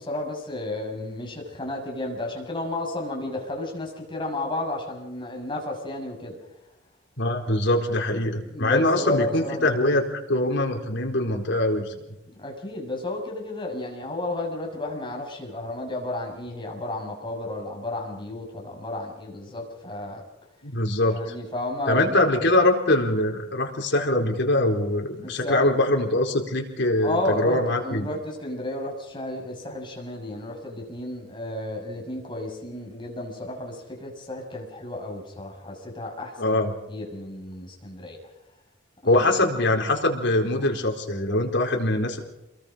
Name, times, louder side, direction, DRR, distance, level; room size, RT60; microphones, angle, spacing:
voice 1, 0.0-6.4 8.2-9.8 12.3-20.2 21.0-22.2 25.2-25.7 27.0-36.6 36.9-38.2 39.0-39.4, left 1 dB, 25° left, 0 dB, 6.4 m, -32 dB
voice 2, 7.2-11.9 20.6-21.3 21.9-28.1 36.4-36.7 39.0-42.2, left 1 dB, 60° left, 2 dB, 4.2 m, -23 dB
28.5 x 22.5 x 5.2 m, 0.92 s
head